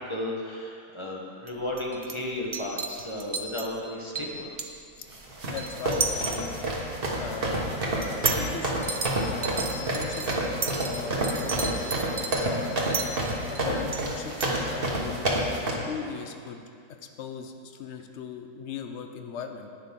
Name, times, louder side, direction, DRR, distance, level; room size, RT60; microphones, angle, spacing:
voice 1, 0.1-4.5, left 1 dB, 20° left, -2 dB, 1.0 m, -34 dB
sound 1, 1.5-1.6 1.8-2.2 2.5-3.7 4.2-4.7 5.6-6.6 7.1-7.2 8.0-8.4 8.8-9.1 9.4-14.0 14.4-14.5, right 4 dB, 70° right, 0.3 m, -32 dB
sound 2, 5.1-15.7, right 1 dB, 40° right, 1.5 m, -28 dB
voice 2, 5.5-6.5 7.2-7.7 8.4-9.0 9.3-10.4 10.9-11.7 12.4-12.7 13.5-15.4 15.9-16.6 17.2-19.7, left 6 dB, 55° left, 6 dB, 0.9 m, -38 dB
10.5 x 9.6 x 3.7 m, 2.4 s
omnidirectional pair, 1.6 m